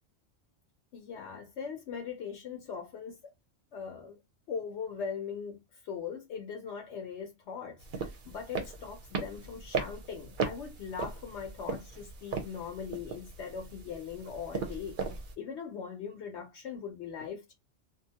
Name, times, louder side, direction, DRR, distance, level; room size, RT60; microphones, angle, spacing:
voice 1, 0.9-3.2 3.7-4.2 4.5-15.0 15.4-17.5, left 6 dB, 75° left, 0.9 m, -40 dB
sound 1, 7.8-15.3, right 5 dB, 55° right, 0.7 m, -38 dB
2.5 x 2.2 x 2.8 m
omnidirectional pair, 1.2 m